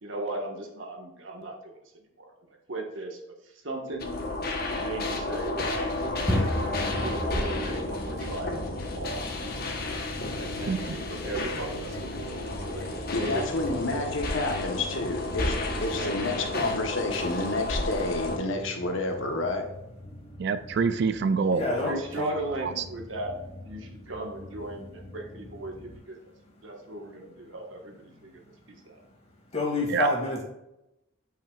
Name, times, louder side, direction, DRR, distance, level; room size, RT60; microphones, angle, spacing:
voice 1, 0.0-1.8 2.2-2.3 2.7-3.2 3.6-4.2 4.8-6.4 6.8-9.2 10.4-14.0 15.9-16.1 21.6-26.2 26.6-28.4 28.9-29.0, right 1 dB, 75° right, 1 dB, 1.5 m, -37 dB
sound 1, 4.0-18.4, left 2 dB, 50° left, 1.1 m, -32 dB
sound 2, 6.1-26.0, equal, 10° left, 1.3 m, -38 dB
voice 2, 10.7-11.0 20.4-21.7 22.6-22.8 29.9-30.1, right 5 dB, 55° right, 12 dB, 0.4 m, -26 dB
voice 3, 13.1-19.7, left 2 dB, 75° left, 3 dB, 1.2 m, -30 dB
voice 4, 21.5-22.3 29.5-30.4, left 2 dB, 35° left, -3 dB, 2.4 m, -27 dB
8.5 x 5.8 x 2.4 m, 0.88 s
head